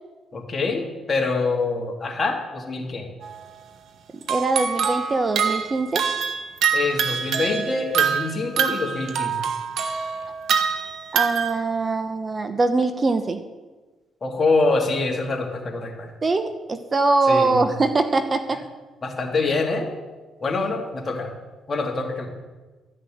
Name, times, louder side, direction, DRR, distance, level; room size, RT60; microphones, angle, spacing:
voice 1, 0.3-3.1 6.7-9.4 14.2-16.1 17.3-17.6 19.0-19.9 20.4-21.3 21.7-22.3, left 3 dB, 35° left, 1 dB, 2.7 m, -25 dB
sound 1, 3.2-3.4 4.2-11.6, right 7 dB, 70° right, 1.2 m, -25 dB
voice 2, 4.3-6.1 11.1-13.4 16.2-18.6, right 3 dB, 30° right, 9 dB, 0.9 m, -22 dB
13.0 x 6.4 x 9.3 m, 1.3 s
cardioid pair, 90°, 0 cm